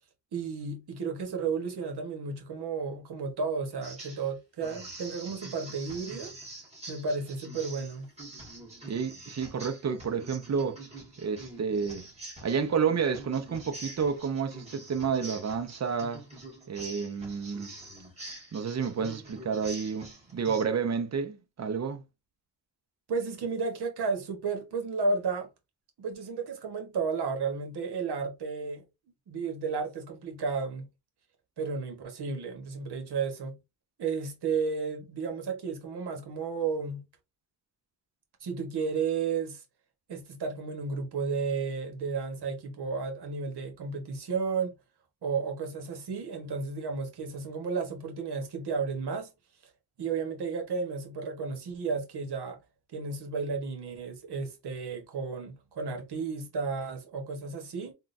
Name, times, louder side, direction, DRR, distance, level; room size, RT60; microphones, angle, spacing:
voice 1, 0.3-6.3 6.9-8.1 23.1-25.5 26.0-28.8 29.3-30.9 31.6-33.6 34.0-37.0 38.4-39.6 40.1-44.7 45.2-49.3 50.0-52.6 52.9-57.9, right 5 dB, 70° right, 1.2 m, -33 dB
sound 1, 3.8-4.3 4.6-20.6, right 2 dB, 15° right, 1.8 m, -46 dB
voice 2, 8.9-10.8 11.2-12.1 12.4-16.2 16.7-17.7 18.5-22.0, right 6 dB, 40° right, 0.7 m, -30 dB
3.7 x 2.4 x 2.5 m
cardioid pair, 90°, 41 cm